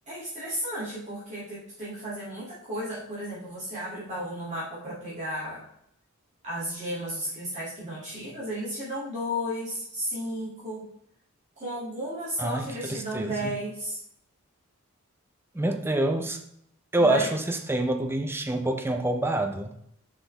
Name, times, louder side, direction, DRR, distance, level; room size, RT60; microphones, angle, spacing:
voice 1, 0.1-5.6 6.4-10.9 11.6-14.0 17.0-17.3, equal, 35° right, -9 dB, 2.4 m, -34 dB
voice 2, 12.4-13.5 15.5-16.4 16.9-19.7, right 1 dB, 10° right, 5 dB, 0.5 m, -26 dB
6.2 x 5.7 x 3.3 m, 0.72 s
head